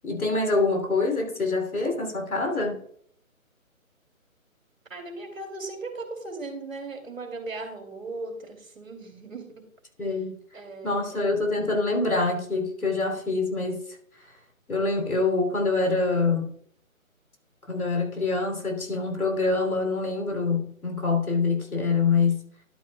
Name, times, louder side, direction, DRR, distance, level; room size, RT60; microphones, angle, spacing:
voice 1, 0.0-2.8 10.0-10.3 10.8-13.8 14.7-16.5 17.7-22.4, left 3 dB, 85° left, 2 dB, 3.1 m, -25 dB
voice 2, 4.9-9.7 10.5-11.3, right 3 dB, 65° right, 4 dB, 2.6 m, -38 dB
11.5 x 8.6 x 2.3 m, 0.63 s
figure-of-eight pair, 160°, 42 cm